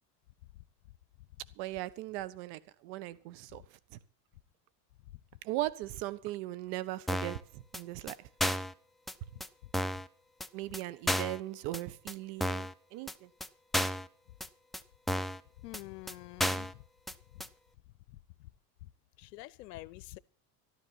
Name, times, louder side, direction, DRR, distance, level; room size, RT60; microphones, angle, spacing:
voice 1, 1.6-3.6 5.4-8.2 10.5-13.3, right 16 dB, 70° right, 1.3 m, -38 dB
sound 1, 7.1-7.4 7.7-7.8 8.1-8.2 8.4-8.7 9.1-9.2 9.4-9.5 9.7-10.1 10.4-10.5 10.7-10.8 11.1-11.4 11.7-11.8 12.1-12.2 12.4-12.7 13.1-13.2 13.4-13.5 13.7-14.1 14.4-14.5 14.7-14.8 15.1-15.4 15.7-15.8 16.1-16.2 16.4-16.7 17.1-17.2 17.4-17.5, equal, ahead, 0.7 m, -32 dB
voice 2, 15.6-16.8 17.3-17.4 18.1-18.2 18.8-18.9 19.2-20.2, left 18 dB, 90° left, 0.7 m, -47 dB
13.0 x 12.5 x 5.9 m
supercardioid pair, 100°, 47 cm